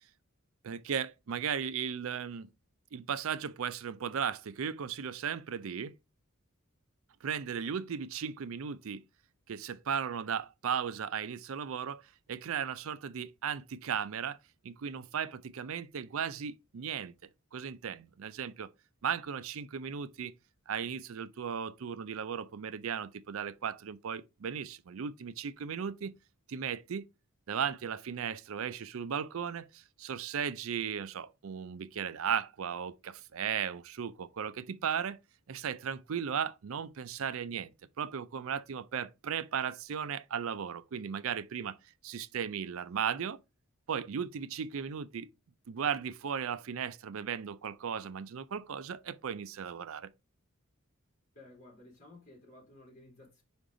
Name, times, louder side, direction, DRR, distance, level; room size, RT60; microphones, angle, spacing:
voice 1, 0.6-2.5 2.9-5.9 7.2-9.0 9.5-12.0 12.3-14.4 14.6-18.7 19.0-20.3 20.7-26.1 26.5-27.1 27.5-35.2 35.5-41.8 42.0-43.4 43.9-45.3 45.7-50.1, right 7 dB, 65° right, 0.4 m, -36 dB
voice 2, 51.3-53.4, left 2 dB, 35° left, 3.1 m, -55 dB
5.2 x 5.0 x 3.7 m
head